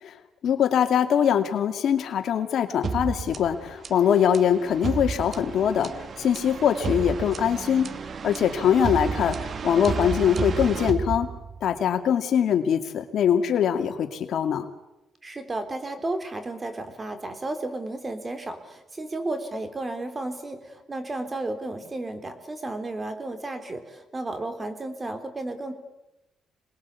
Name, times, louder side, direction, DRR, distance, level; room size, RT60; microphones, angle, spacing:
voice 1, 0.4-7.9 8.2-11.3 11.6-14.7, left 8 dB, 70° left, 7 dB, 2.3 m, -23 dB
sound 1, 2.8-11.8, right 5 dB, 45° right, 1.2 m, -32 dB
voice 2, 15.2-25.7, right 2 dB, 25° right, 8 dB, 3.6 m, -33 dB
27.0 x 20.5 x 8.4 m, 0.96 s
cardioid pair, 90°, 0 cm